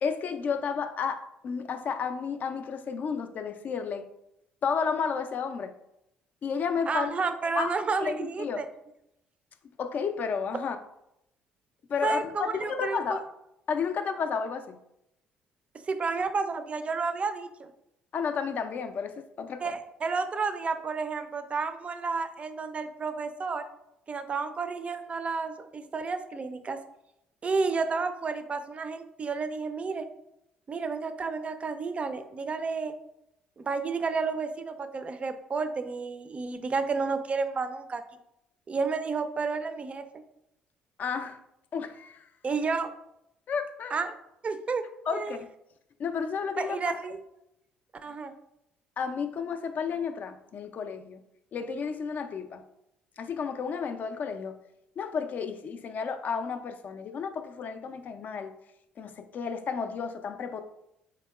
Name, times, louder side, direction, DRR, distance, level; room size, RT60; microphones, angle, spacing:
voice 1, 0.0-4.1 4.6-5.7 6.4-7.1 7.6-7.7 8.0-8.6 9.8-10.8 11.9-13.2 13.7-14.8 18.1-19.7 41.0-41.4 41.7-42.3 43.5-44.0 45.1-45.5 46.0-46.8 49.0-51.2 51.5-52.6 53.2-54.6 55.0-58.5 59.0-60.6, left 6 dB, 50° left, 9 dB, 0.3 m, -32 dB
voice 2, 6.9-8.7 12.0-13.2 15.9-17.5 19.6-23.6 24.1-26.8 27.4-30.1 30.7-32.9 33.6-38.0 38.7-40.0 42.4-42.9 43.9-44.1 44.4-44.8 45.1-45.4 46.6-47.2 48.0-48.3, right 4 dB, 35° right, 9 dB, 0.4 m, -31 dB
3.5 x 2.9 x 2.3 m, 0.82 s
supercardioid pair, 65°, 4 cm